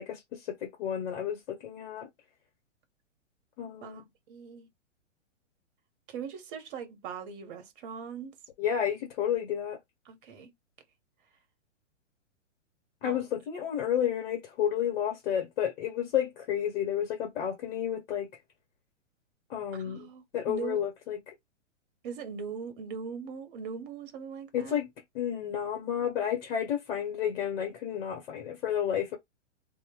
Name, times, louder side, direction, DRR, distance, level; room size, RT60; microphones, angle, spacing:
voice 1, 0.0-2.1 3.6-4.0 8.6-9.8 13.0-18.3 19.5-20.1 20.3-21.2 24.5-24.9 25.1-29.2, left 9 dB, 50° left, 1.1 m, -31 dB
voice 2, 4.3-4.7 6.1-8.3 10.1-10.5 13.0-13.3 19.7-20.8 22.0-24.8, right 6 dB, 45° right, 0.9 m, -40 dB
2.9 x 2.2 x 2.2 m
hypercardioid pair, 120°, 38 cm